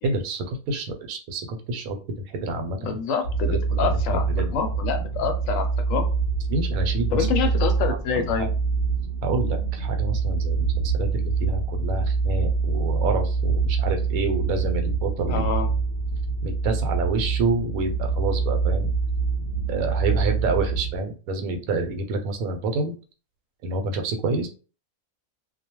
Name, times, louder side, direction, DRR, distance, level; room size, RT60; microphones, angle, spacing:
voice 1, 0.0-2.0 2.3-3.0 3.5-4.6 6.5-7.3 7.9-8.5 9.2-10.7 10.9-15.4 16.4-18.9 19.7-22.9 23.6-24.5, right 3 dB, 75° right, 4 dB, 1.0 m, -28 dB
voice 2, 2.8-6.1 7.1-8.5 15.3-15.7, left 6 dB, 70° left, 6 dB, 0.9 m, -27 dB
sound 1, 3.2-21.0, right 4 dB, 40° right, 0.6 m, -25 dB
2.3 x 2.2 x 2.9 m, 0.36 s
omnidirectional pair, 1.5 m